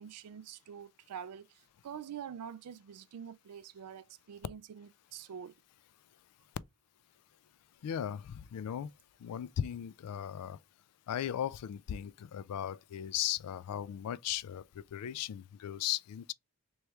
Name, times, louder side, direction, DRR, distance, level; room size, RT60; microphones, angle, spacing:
voice 1, 0.0-5.6, right 8 dB, 90° right, 0.4 m, -46 dB
voice 2, 7.8-8.9 9.2-10.6 11.1-14.6 14.9-16.3, left 10 dB, 85° left, 0.3 m, -37 dB
3.4 x 3.0 x 3.2 m
head